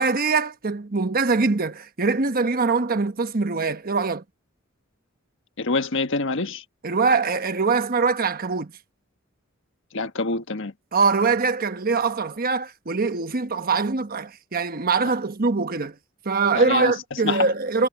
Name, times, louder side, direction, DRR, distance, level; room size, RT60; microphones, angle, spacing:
voice 1, 0.0-4.2 6.8-8.7 10.9-15.9 16.2-17.9, right 4 dB, 45° right, 1.1 m, -23 dB
voice 2, 5.6-6.6 9.9-10.7 16.5-16.9 17.2-17.4, left 3 dB, 65° left, 1.4 m, -25 dB
head